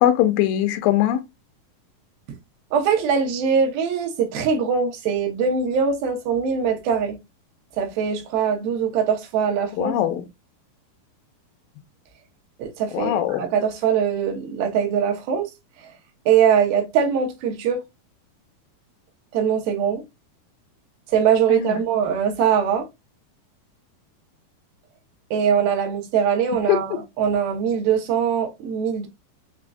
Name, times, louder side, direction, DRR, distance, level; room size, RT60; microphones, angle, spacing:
voice 1, 0.0-1.2 9.8-10.2 12.9-13.4 21.5-21.8 26.7-26.8, left 12 dB, 80° left, 2.3 m, -20 dB
voice 2, 2.7-7.2 7.8-9.9 12.6-15.5 16.3-17.8 19.3-20.0 21.1-22.9 25.3-29.1, right 7 dB, 90° right, 2.7 m, -22 dB
6.3 x 2.3 x 2.4 m
omnidirectional pair, 4.2 m